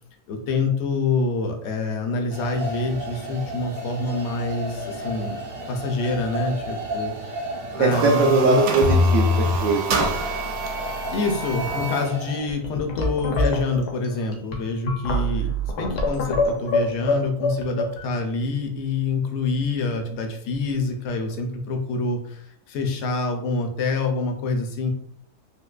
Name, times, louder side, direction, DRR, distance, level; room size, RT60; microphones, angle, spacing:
voice 1, 0.3-5.4 5.7-7.4 7.8-8.6 11.1-24.9, left 3 dB, 70° left, 4 dB, 0.6 m, -26 dB
sound 1, 2.3-12.4, right 1 dB, 50° right, 1.2 m, -33 dB
sound 2, 7.5-7.9 8.2-8.3 8.8-9.6 9.9-10.5 11.2-11.3 11.6-12.0 12.5-18.0, left 2 dB, 85° left, 1.2 m, -24 dB
sound 3, 7.7-12.1, right 4 dB, 85° right, 1.2 m, -29 dB
voice 2, 7.8-10.1, right 3 dB, 70° right, 0 dB, 0.8 m, -21 dB
3.7 x 2.7 x 2.3 m, 0.67 s
omnidirectional pair, 1.7 m